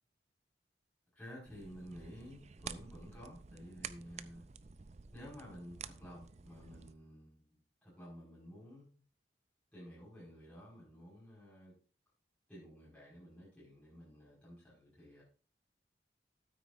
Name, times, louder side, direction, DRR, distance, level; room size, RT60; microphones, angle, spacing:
voice 1, 1.2-4.5 5.1-7.5 7.8-8.9 9.7-11.7 12.5-15.2, equal, 5° left, -8 dB, 5.2 m, -52 dB
sound 1, 1.4-6.9, right 6 dB, 40° right, 0.5 m, -50 dB
13.0 x 9.2 x 2.6 m, 0.38 s
head